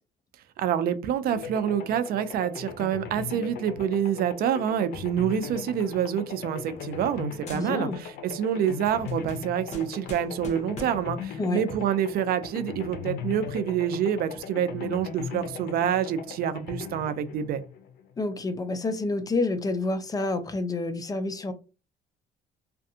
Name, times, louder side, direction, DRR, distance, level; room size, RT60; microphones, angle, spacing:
voice 1, 0.6-17.6, right 9 dB, 65° right, 0.4 m, -27 dB
sound 1, 1.3-18.2, left 7 dB, 75° left, 0.5 m, -39 dB
sound 2, 5.8-7.2 7.5-8.1 8.5-11.2, left 2 dB, 40° left, 0.8 m, -44 dB
voice 2, 7.5-8.0 11.4-11.6 18.2-21.5, left 3 dB, 20° left, 0.4 m, -28 dB
2.4 x 2.2 x 2.7 m
cardioid pair, 110°, 17 cm